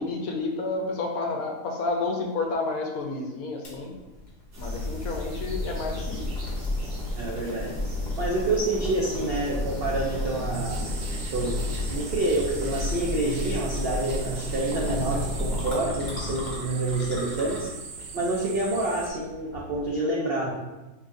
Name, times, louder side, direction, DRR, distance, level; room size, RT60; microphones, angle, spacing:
voice 1, 0.0-3.9 4.6-6.3, left 3 dB, 70° left, 1 dB, 1.0 m, -30 dB
sound 1, 3.6-19.9, left 1 dB, 35° left, 0.9 m, -39 dB
sound 2, 4.5-15.8, left 1 dB, 40° right, 1.0 m, -32 dB
voice 2, 7.2-7.7 8.2-11.0 11.3-11.6 11.9-17.7 18.1-20.5, right 2 dB, 85° right, -3 dB, 0.5 m, -27 dB
sound 3, 10.5-19.1, right 4 dB, 65° right, 0.9 m, -40 dB
4.8 x 3.2 x 2.5 m, 1.1 s
omnidirectional pair, 1.7 m